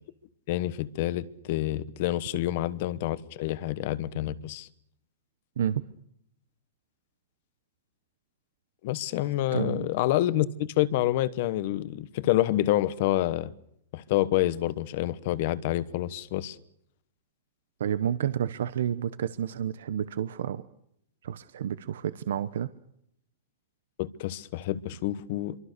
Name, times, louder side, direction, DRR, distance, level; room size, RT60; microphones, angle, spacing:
voice 1, 0.5-4.7 8.8-13.5 13.9-16.6 24.0-25.6, left 14 dB, 45° left, 17 dB, 1.1 m, -28 dB
voice 2, 9.5-9.9 17.8-20.7 21.2-22.7, right 9 dB, 75° right, 14 dB, 0.9 m, -30 dB
26.5 x 24.0 x 6.7 m, 0.74 s
supercardioid pair, 165°, 0 cm